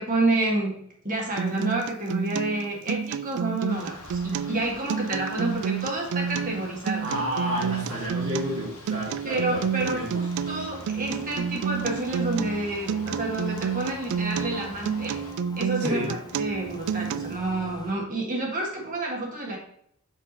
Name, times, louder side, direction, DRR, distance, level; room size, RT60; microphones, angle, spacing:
voice 1, 0.0-7.2 9.2-15.1 15.6-19.6, right 2 dB, 40° right, -1 dB, 1.5 m, -29 dB
Acoustic guitar, 1.4-17.4, right 7 dB, 85° right, 0.3 m, -30 dB
sound 1, 3.7-15.3, left 2 dB, 75° left, 1.5 m, -47 dB
voice 2, 7.0-9.6 9.9-10.1 15.8-16.2, equal, 60° right, -7 dB, 1.9 m, -30 dB
sound 2, 9.5-17.9, left 2 dB, 20° left, 0.5 m, -44 dB
5.4 x 4.9 x 4.0 m, 0.68 s
head